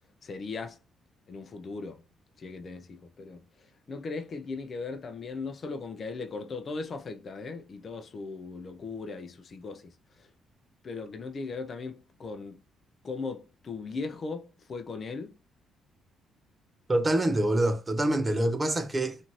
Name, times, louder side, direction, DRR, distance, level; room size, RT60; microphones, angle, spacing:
voice 1, 0.2-0.8 1.3-2.0 2.4-3.4 3.9-9.9 10.2-10.3 10.8-12.6 13.0-15.4, left 4 dB, 45° left, 0.4 m, -38 dB
voice 2, 16.9-19.2, right 1 dB, 25° right, 0.5 m, -25 dB
2.6 x 2.5 x 3.0 m
cardioid pair, 90°, 0 cm